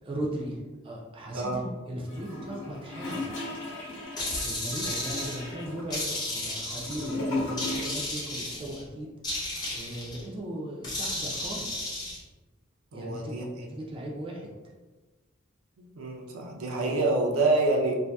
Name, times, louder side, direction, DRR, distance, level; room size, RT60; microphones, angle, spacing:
voice 1, 0.0-3.3 4.4-9.1 9.7-11.9 12.9-14.7, right 1 dB, 25° right, -2 dB, 0.4 m, -37 dB
Gurgling / Toilet flush, 2.1-8.2 8.4-8.5, left 2 dB, 65° left, 0.9 m, -36 dB
sound 1, 4.2-5.5 5.9-7.1 7.6-8.8 9.2-10.2 10.8-12.2, left 1 dB, 20° left, 0.6 m, -33 dB
voice 2, 12.9-13.4 16.0-18.0, right 2 dB, 85° right, 0 dB, 0.5 m, -27 dB
2.6 x 2.4 x 2.2 m, 1.3 s
head